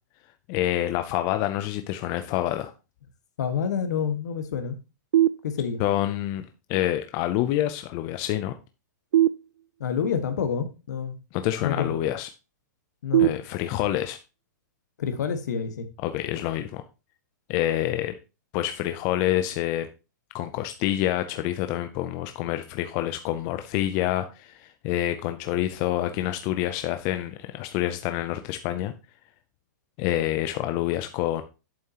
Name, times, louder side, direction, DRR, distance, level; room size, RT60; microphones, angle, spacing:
voice 1, 0.5-2.7 5.8-8.5 11.3-12.3 13.2-14.2 16.0-16.8 17.5-18.1 18.5-19.9 20.3-28.9 30.0-31.4, left 13 dB, 20° left, 8 dB, 0.4 m, -27 dB
voice 2, 3.4-4.7 5.4-5.8 9.8-11.1 11.6-11.9 13.0-13.3 15.0-15.8, left 7 dB, 60° left, 8 dB, 1.5 m, -28 dB
sound 1, 5.1-6.1 9.1-10.1 13.1-14.1, right 12 dB, 75° right, 0.4 m, -24 dB
8.6 x 7.4 x 2.9 m, 0.29 s
hypercardioid pair, 175°, 10 cm